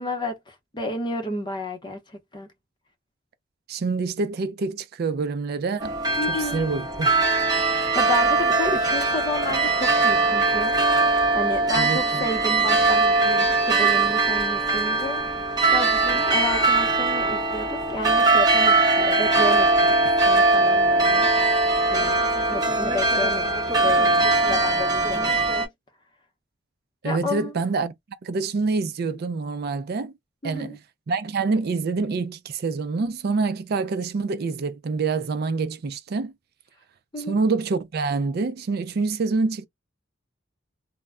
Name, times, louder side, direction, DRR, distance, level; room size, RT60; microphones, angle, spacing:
voice 1, 0.0-2.5 6.2-6.7 7.9-10.7 11.3-15.4 15.7-21.3 21.9-22.2 22.5-25.7 27.0-27.6 30.4-30.8 37.1-37.4, left 1 dB, 25° left, 0.7 m, -31 dB
voice 2, 3.7-6.0 6.3-7.1 11.7-12.3 27.0-27.9 28.2-30.1 30.4-30.8 31.1-36.3 37.2-39.7, right 4 dB, 55° right, 0.4 m, -26 dB
sound 1, 5.8-25.7, right 3 dB, 20° right, 0.9 m, -21 dB
2.1 x 2.1 x 3.5 m
head